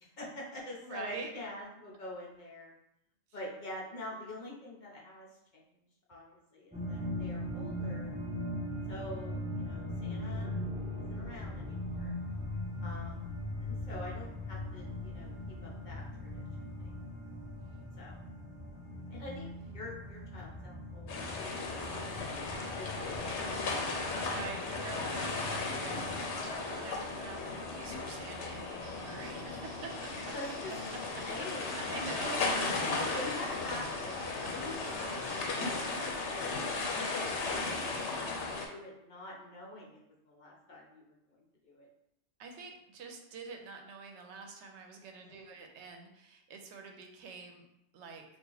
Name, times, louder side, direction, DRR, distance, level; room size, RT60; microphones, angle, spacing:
voice 1, 0.0-2.7 3.3-5.6 6.1-8.1 8.9-10.5 11.1-12.1 12.8-13.3 13.6-15.3 15.6-16.4 16.8-16.9 18.0-18.2 19.1-22.1 22.6-23.4 25.3-25.5 25.9-26.5 27.3-27.7 30.3-30.7 31.2-32.6 33.1-41.9 45.2-45.6, left 1 dB, 50° left, -4 dB, 0.7 m, -46 dB
voice 2, 0.8-1.3 23.9-30.1 31.1-31.2 31.9-33.0 34.4-34.5 34.8-35.0 42.4-47.7 47.9-48.2, right 4 dB, 80° right, 3 dB, 0.9 m, -46 dB
sound 1, 6.7-26.2, left 1 dB, 10° right, 0.6 m, -40 dB
sound 2, 21.1-38.7, left 3 dB, 85° left, 0.9 m, -36 dB
sound 3, 28.8-35.7, equal, 45° right, 1.0 m, -51 dB
2.8 x 2.4 x 3.8 m, 0.84 s
omnidirectional pair, 1.1 m